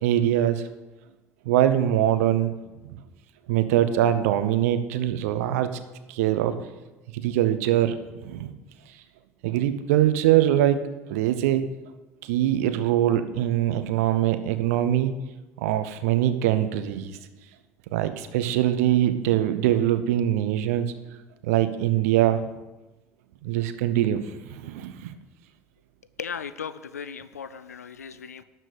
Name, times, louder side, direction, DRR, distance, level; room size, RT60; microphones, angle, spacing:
voice 1, 0.0-0.6 1.4-2.5 2.8-3.0 3.5-5.7 6.1-6.5 7.1-8.5 9.4-10.8 11.1-11.7 12.2-15.1 15.6-17.2 17.9-20.9 21.4-22.4 23.4-25.1, right 12 dB, 70° right, 10 dB, 0.8 m, -23 dB
voice 2, 26.2-28.4, left 7 dB, 85° left, 14 dB, 0.4 m, -37 dB
12.0 x 4.5 x 8.2 m, 1.1 s
figure-of-eight pair, 60°, 8 cm